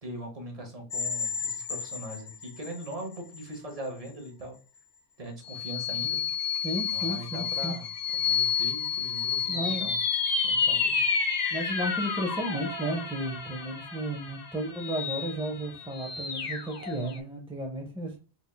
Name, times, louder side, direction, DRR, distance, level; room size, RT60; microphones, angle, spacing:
voice 1, 0.0-4.6 5.2-6.3 6.9-7.9 8.2-10.0 10.4-11.0 11.3-11.4, right 1 dB, 35° right, 2 dB, 1.0 m, -40 dB
sound 1, 0.9-2.9 3.4-3.5 5.5-17.2, left 6 dB, 45° left, 0.7 m, -30 dB
voice 2, 6.6-7.7 9.5-9.9 11.5-18.2, right 1 dB, 5° right, 1 dB, 0.5 m, -33 dB
4.2 x 3.4 x 2.2 m, 0.36 s
omnidirectional pair, 1.1 m